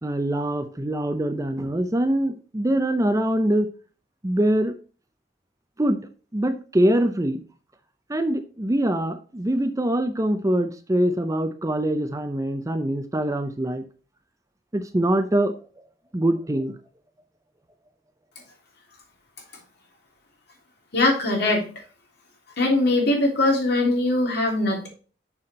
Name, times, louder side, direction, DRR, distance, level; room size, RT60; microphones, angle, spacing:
voice 1, 0.0-3.7 4.2-4.7 5.8-6.0 6.3-7.4 8.1-13.8 14.7-15.5 16.1-16.7, right 1 dB, 20° right, 9 dB, 0.6 m, -23 dB
voice 2, 20.9-21.7 22.6-24.9, left 2 dB, 65° left, 0 dB, 3.0 m, -21 dB
6.7 x 5.7 x 4.2 m, 0.37 s
head